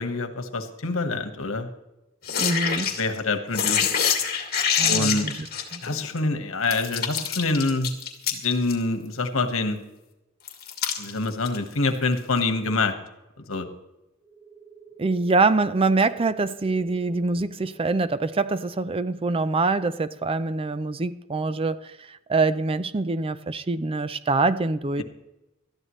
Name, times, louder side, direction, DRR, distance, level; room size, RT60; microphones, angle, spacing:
voice 1, 0.0-1.7 3.0-3.9 4.9-5.3 5.8-7.9 8.3-9.8 11.0-12.9 13.5-13.7, left 3 dB, 75° left, 1.5 m, -26 dB
sound 1, 2.2-3.2 3.5-6.2 6.7-8.7 10.5-11.6 12.4-12.5, left 7 dB, 50° left, 2.2 m, -25 dB
voice 2, 2.4-2.9 4.8-5.5 5.7-5.8 15.0-25.0, right 3 dB, 25° right, 0.5 m, -24 dB
sound 2, 14.2-21.6, right 6 dB, 75° right, 4.1 m, -51 dB
20.0 x 13.5 x 3.2 m
head